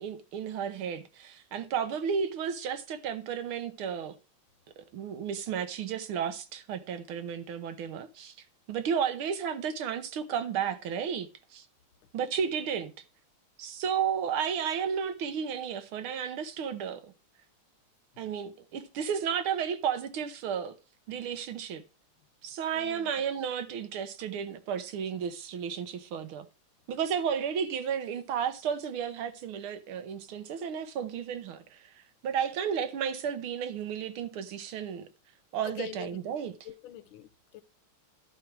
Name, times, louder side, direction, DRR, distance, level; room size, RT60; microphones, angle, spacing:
voice 1, 0.0-4.1 4.8-8.3 8.7-11.6 12.1-12.9 13.6-17.1 18.2-20.8 21.1-21.8 22.4-26.5 26.9-31.8 32.2-35.1 35.5-36.5, right 7 dB, 80° right, 1.8 m, -33 dB
voice 2, 22.7-23.1 35.6-36.2 36.6-37.6, left 12 dB, 80° left, 1.5 m, -44 dB
11.0 x 4.6 x 6.0 m
omnidirectional pair, 2.3 m